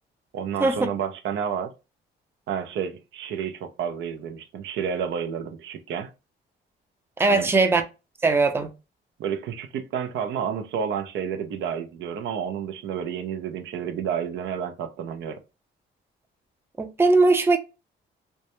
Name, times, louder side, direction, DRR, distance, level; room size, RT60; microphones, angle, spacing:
voice 1, 0.3-1.7 2.5-6.1 7.3-7.5 9.2-15.4, right 7 dB, 75° right, 0.5 m, -30 dB
voice 2, 7.2-7.8 8.2-8.7 16.8-17.6, right 3 dB, 10° right, 0.4 m, -19 dB
2.2 x 2.1 x 2.8 m
cardioid pair, 90°, 20 cm